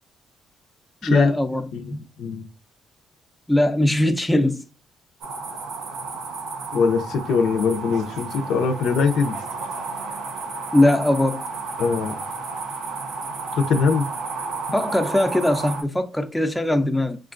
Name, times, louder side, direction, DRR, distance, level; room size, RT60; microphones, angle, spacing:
voice 1, 1.0-2.0 3.5-4.6 10.7-11.4 14.7-17.2, left 1 dB, 5° left, 0.4 m, -20 dB
voice 2, 1.7-2.4 6.7-9.4 11.8-12.2 13.6-14.0, left 5 dB, 75° left, 0.5 m, -22 dB
sound 1, 5.2-15.8, right 4 dB, 80° right, 0.6 m, -32 dB
3.7 x 2.3 x 2.4 m
cardioid pair, 95°, 0 cm